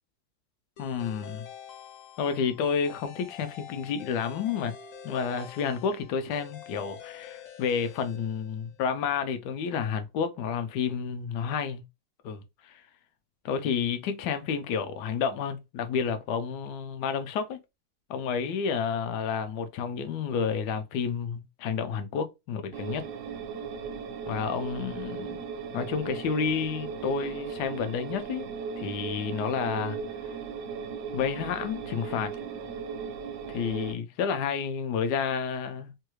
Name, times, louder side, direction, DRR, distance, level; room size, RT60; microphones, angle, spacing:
voice 1, 0.8-1.5 2.2-4.7 5.0-11.8 12.2-12.8 13.4-17.6 18.1-23.1 24.3-25.4 25.7-28.5 28.8-30.0 31.1-32.4 33.5-35.9, left 6 dB, 80° left, 1.2 m, -30 dB
sound 1, 0.8-8.9, left 8 dB, 65° left, 0.9 m, -47 dB
sound 2, 22.7-34.0, right 6 dB, 70° right, 0.8 m, -37 dB
3.2 x 2.3 x 3.0 m
omnidirectional pair, 1.8 m